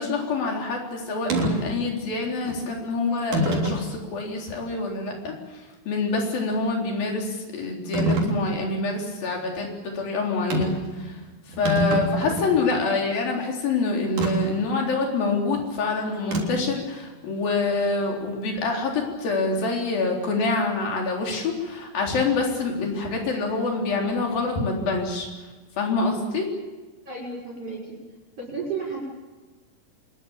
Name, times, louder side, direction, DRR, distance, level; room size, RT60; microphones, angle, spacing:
voice 1, 0.0-5.3 5.9-11.1 11.6-25.3 25.8-26.5, left 3 dB, 85° left, 1 dB, 5.7 m, -26 dB
sound 1, 1.3-1.5 2.4-2.6 3.3-3.8 4.5-4.6 7.9-8.3 10.5-10.9 11.2-11.3 11.5-12.6 14.2-14.3 16.3-16.7, right 1 dB, 60° right, 4.9 m, -24 dB
voice 2, 27.0-27.9 28.4-29.0, right 4 dB, 40° right, -3 dB, 6.8 m, -32 dB
25.0 x 21.5 x 7.3 m, 1.2 s
omnidirectional pair, 4.0 m